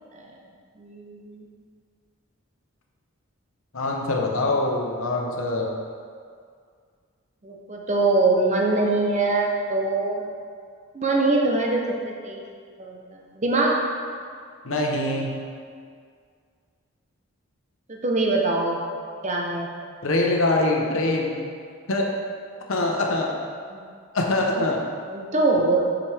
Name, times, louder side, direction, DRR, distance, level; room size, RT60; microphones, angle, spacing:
voice 1, 0.8-1.5 7.4-10.3 10.9-12.4 12.8-13.8 17.9-18.8 19.2-19.7 23.7-23.8 25.1-25.9, right 2 dB, 35° right, 0 dB, 0.8 m, -23 dB
voice 2, 3.7-5.7 14.6-15.3 20.0-21.3 21.9-22.1 22.7-23.3 24.1-24.8, left 2 dB, 75° left, 0 dB, 1.0 m, -23 dB
8.5 x 5.1 x 3.4 m, 2.1 s
head